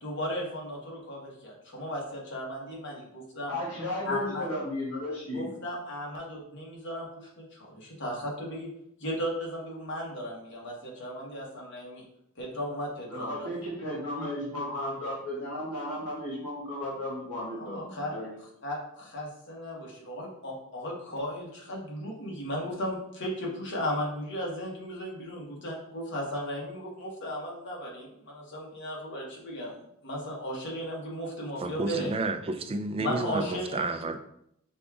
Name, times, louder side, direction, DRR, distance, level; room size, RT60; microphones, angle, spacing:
voice 1, 0.0-3.6 4.0-4.6 5.3-8.7 9.0-12.0 12.3-13.5 17.5-18.2 18.6-32.1 33.0-33.8, equal, 55° left, -3 dB, 1.2 m, -36 dB
voice 2, 3.5-5.5 13.1-18.3, left 1 dB, 80° left, -7 dB, 1.5 m, -34 dB
voice 3, 31.6-34.2, right 2 dB, 25° right, 7 dB, 0.3 m, -31 dB
5.0 x 2.4 x 3.5 m, 0.75 s
head